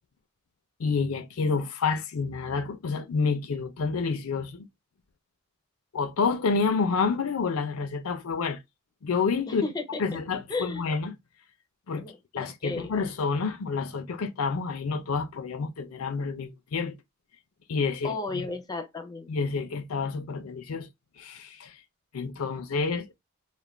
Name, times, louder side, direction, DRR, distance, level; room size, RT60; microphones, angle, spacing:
voice 1, 0.8-4.7 5.9-8.6 9.0-9.6 10.0-11.1 11.9-12.1 12.3-16.9 17.7-18.4 19.3-20.9 21.2-21.7 22.1-23.1, left 4 dB, 80° left, 0.5 m, -29 dB
voice 2, 9.5-10.0 10.5-10.9 12.0-12.9 18.0-19.3, left 3 dB, 20° left, 0.4 m, -34 dB
2.4 x 2.1 x 3.1 m
head